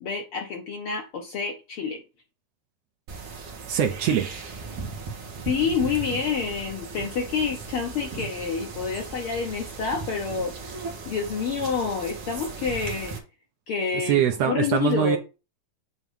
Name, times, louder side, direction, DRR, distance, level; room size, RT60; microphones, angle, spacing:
voice 1, 0.0-2.0 5.4-13.2 13.7-15.2, left 5 dB, 80° left, 1.2 m, -28 dB
sound 1, 3.1-13.2, right 4 dB, 50° right, 2.3 m, -37 dB
voice 2, 3.7-4.3 13.9-15.2, right 9 dB, 75° right, 1.5 m, -23 dB
8.7 x 3.1 x 5.5 m
omnidirectional pair, 3.8 m